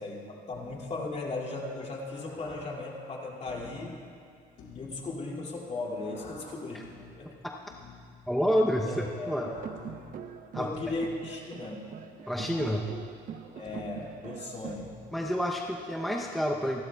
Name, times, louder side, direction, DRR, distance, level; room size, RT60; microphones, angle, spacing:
voice 1, 0.0-3.9 4.7-6.8 7.1-7.3 8.8-9.5 10.6-11.8 13.6-15.0, left 2 dB, 40° left, -2 dB, 2.6 m, -37 dB
sound 1, 0.5-2.1 3.5-6.1 6.8-9.4 9.8-12.3 12.6-16.1, left 6 dB, 90° left, 2.6 m, -52 dB
sound 2, 1.7-3.6 5.5-7.3 8.8-10.6, left 3 dB, 65° left, 4.2 m, -52 dB
voice 2, 8.3-9.5 10.5-10.7 12.3-12.9 15.1-16.8, equal, ahead, 0 dB, 0.8 m, -28 dB
sound 3, 9.3-14.8, right 8 dB, 55° right, 0.8 m, -43 dB
28.0 x 12.5 x 2.3 m, 2.3 s
cardioid pair, 110°, 17 cm